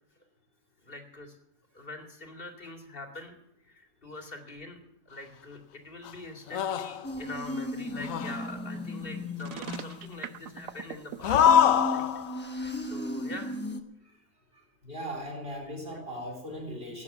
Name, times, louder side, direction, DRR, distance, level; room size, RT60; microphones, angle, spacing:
voice 1, 0.8-1.4 1.7-3.3 3.6-4.8 5.1-12.1 12.4-13.6, left 2 dB, 40° left, 2 dB, 2.6 m, -44 dB
sound 1, 6.0-6.1 6.5-7.2 7.9-8.5 9.6-9.9 11.2-12.4, left 9 dB, 75° left, 1.1 m, -24 dB
sound 2, 7.0-11.1 11.4-13.8, left 1 dB, 10° left, 1.0 m, -36 dB
sound 3, 9.4-11.5, right 11 dB, 75° right, 1.1 m, -39 dB
voice 2, 14.5-17.0, equal, 40° right, 0 dB, 4.4 m, -39 dB
16.0 x 9.7 x 7.1 m, 0.78 s
omnidirectional pair, 1.4 m